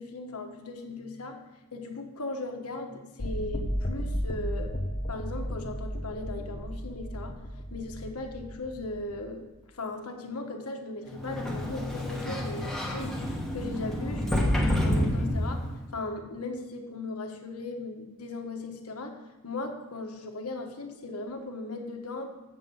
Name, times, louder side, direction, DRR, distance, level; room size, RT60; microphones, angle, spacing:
voice 1, 0.0-1.4 1.7-4.7 5.1-7.4 7.7-9.5 9.7-13.3 13.5-15.7 15.9-19.1 19.4-22.3, left 2 dB, 90° left, 4 dB, 1.3 m, -37 dB
sound 1, 3.2-9.2, equal, 35° left, 0.6 m, -34 dB
Sliding door, 11.1-15.9, equal, ahead, 1.1 m, -29 dB
8.0 x 7.5 x 5.4 m, 1.2 s
head